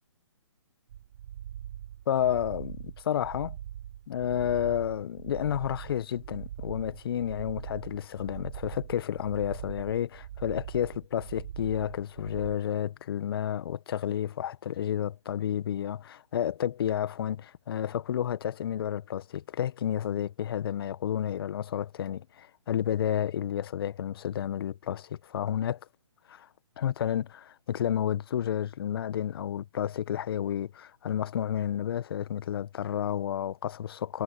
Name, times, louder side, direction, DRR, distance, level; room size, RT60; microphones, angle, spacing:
sound 1, 0.9-12.5, right 11 dB, 45° right, 1.7 m, -42 dB
voice 1, 2.1-3.6 4.1-25.8 26.3-26.5 26.8-34.2, left 10 dB, 50° left, 1.6 m, -31 dB
figure-of-eight pair, 135°, 16 cm